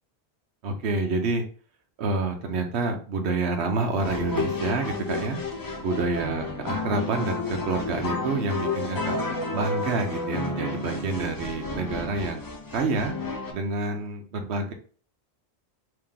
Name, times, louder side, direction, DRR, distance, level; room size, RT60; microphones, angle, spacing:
voice 1, 0.6-1.4 2.0-5.4 5.8-9.1 9.5-12.4 12.7-13.1 13.5-14.7, right 3 dB, 75° right, 4 dB, 1.0 m, -28 dB
sound 1, 4.0-13.5, left 3 dB, 35° left, 0.3 m, -31 dB
3.0 x 2.9 x 3.7 m, 0.41 s
omnidirectional pair, 1.1 m